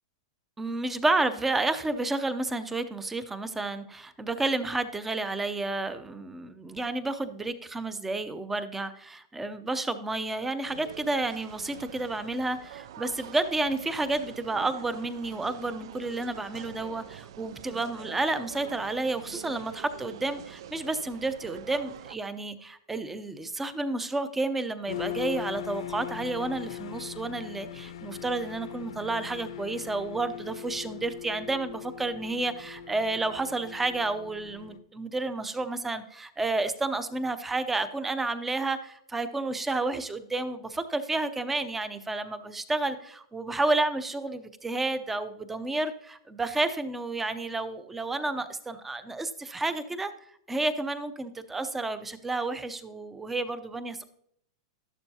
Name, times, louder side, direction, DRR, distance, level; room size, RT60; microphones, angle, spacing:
voice 1, 0.6-50.1 50.5-54.1, right 2 dB, 5° right, 12 dB, 0.5 m, -31 dB
sound 1, 10.6-22.2, right 10 dB, 65° right, 0.4 m, -45 dB
sound 2, 24.9-34.8, left 11 dB, 80° left, 0.8 m, -40 dB
12.5 x 11.5 x 2.8 m, 0.72 s
supercardioid pair, 155°, 3 cm